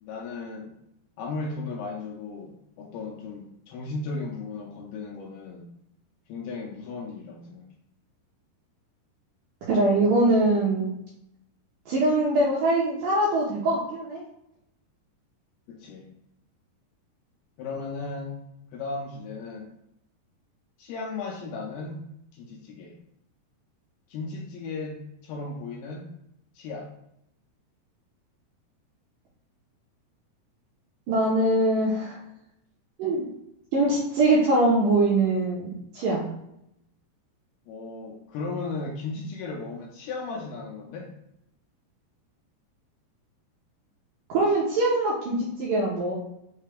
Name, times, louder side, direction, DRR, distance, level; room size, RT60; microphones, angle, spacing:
voice 1, 0.0-0.7 1.2-5.7 6.3-7.6 15.7-16.1 17.6-18.4 18.7-19.7 20.8-22.0 22.3-22.9 24.1-26.1 26.6-26.9 37.7-41.1, left 3 dB, 80° left, -1 dB, 2.3 m, -36 dB
voice 2, 9.7-10.9 11.9-14.2 31.1-32.2 33.0-33.3 33.7-36.3 44.3-46.1, right 2 dB, 75° right, -6 dB, 2.0 m, -23 dB
6.4 x 2.2 x 3.4 m, 0.80 s
omnidirectional pair, 4.8 m